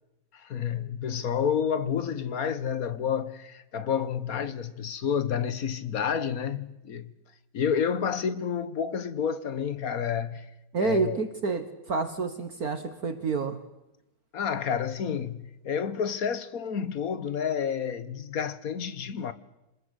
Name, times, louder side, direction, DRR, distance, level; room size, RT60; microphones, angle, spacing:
voice 1, 0.3-7.1 7.5-10.5 10.8-11.2 14.3-19.3, left 7 dB, 50° left, 1.4 m, -29 dB
voice 2, 10.7-13.6, right 4 dB, 50° right, 1.7 m, -29 dB
26.0 x 21.0 x 8.2 m
omnidirectional pair, 2.2 m